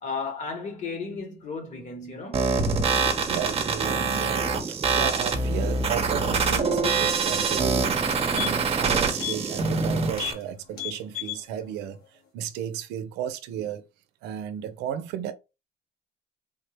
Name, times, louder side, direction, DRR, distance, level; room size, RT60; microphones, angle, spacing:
voice 1, 0.0-2.6, left 4 dB, 45° left, 1.4 m, -34 dB
sound 1, 2.3-10.3, right 4 dB, 35° right, 0.7 m, -25 dB
sound 2, 2.6-10.0, right 4 dB, 20° right, 0.3 m, -37 dB
voice 2, 3.3-8.1 8.3-12.0 12.3-13.8 14.2-15.3, right 9 dB, 90° right, 0.5 m, -34 dB
sound 3, 7.5-7.6 7.9-8.8 9.2-9.4 9.7-9.8 10.1-10.4 10.7-11.4 11.8-11.9, left 15 dB, 65° left, 1.4 m, -34 dB
3.5 x 2.0 x 3.2 m
cardioid pair, 110°, 17 cm